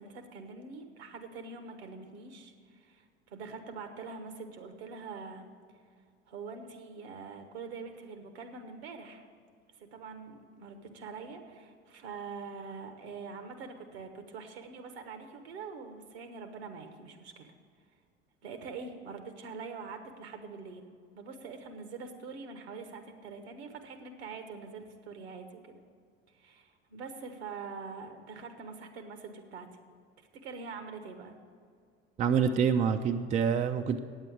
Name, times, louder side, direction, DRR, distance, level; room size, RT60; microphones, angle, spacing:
voice 1, 0.0-5.5 6.3-9.2 9.8-17.5 18.4-25.8 26.3-29.7 30.4-31.3, right 4 dB, 65° right, 7 dB, 1.3 m, -44 dB
voice 2, 32.2-34.0, right 7 dB, 20° right, 9 dB, 0.4 m, -26 dB
9.0 x 8.0 x 8.3 m, 2.1 s
figure-of-eight pair, 70°, 34 cm